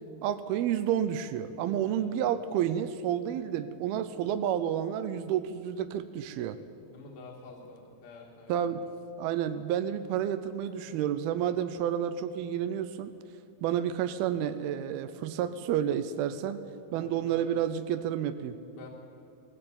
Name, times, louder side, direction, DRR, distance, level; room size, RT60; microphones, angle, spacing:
voice 1, 0.2-6.6 8.5-8.8 9.2-13.1 13.6-16.6 16.9-18.5, right 10 dB, 80° right, 10 dB, 2.6 m, -30 dB
voice 2, 1.8-2.2 6.8-8.8 10.6-11.0 16.9-17.7 18.7-18.9, left 4 dB, 65° left, -2 dB, 3.5 m, -49 dB
20.5 x 16.0 x 8.6 m, 2.4 s
omnidirectional pair, 4.7 m